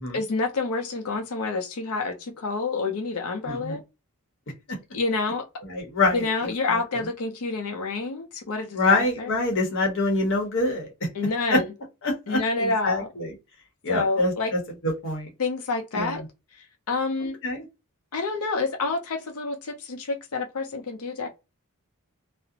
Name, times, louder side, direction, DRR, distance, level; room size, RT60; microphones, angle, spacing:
voice 1, 0.1-3.8 4.9-5.4 6.1-9.3 11.1-11.7 12.3-13.1 13.9-14.5 15.4-16.2 16.9-17.4 18.1-21.3, left 3 dB, 85° left, 0.6 m, -28 dB
voice 2, 3.5-3.8 4.7-4.8 5.6-6.3 6.6-6.8 8.7-10.9 11.5-11.6 12.0-13.3 13.8-15.3 15.9-16.2 17.2-17.6, left 2 dB, 60° left, 0.9 m, -25 dB
2.4 x 2.0 x 2.7 m
head